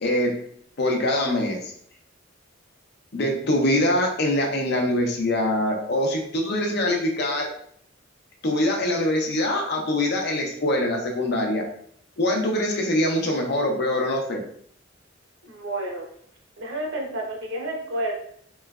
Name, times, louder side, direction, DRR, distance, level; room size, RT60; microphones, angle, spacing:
voice 1, 0.0-0.3 0.8-1.7 3.1-7.5 8.4-11.6 12.2-14.4, left 1 dB, 60° left, 1 dB, 0.7 m, -23 dB
voice 2, 15.4-16.1 16.6-18.1, right 1 dB, 90° right, 0 dB, 0.8 m, -30 dB
3.3 x 3.0 x 2.3 m, 0.64 s
head